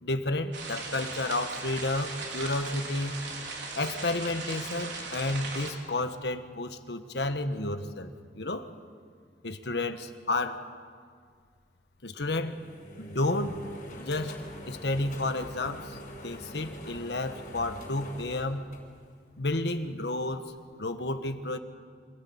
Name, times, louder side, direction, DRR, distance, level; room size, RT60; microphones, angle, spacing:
voice 1, 0.0-3.2 3.8-8.7 9.4-10.6 12.0-12.6 13.0-13.6 13.9-16.0 16.2-18.6 19.4-20.5 20.8-21.6, left 2 dB, 75° left, 8 dB, 1.4 m, -31 dB
sound 1, 0.5-5.7, right 3 dB, 85° right, 4.1 m, -38 dB
sound 2, 12.2-19.5, equal, 50° left, 5.3 m, -45 dB
26.0 x 17.5 x 8.7 m, 2.1 s
head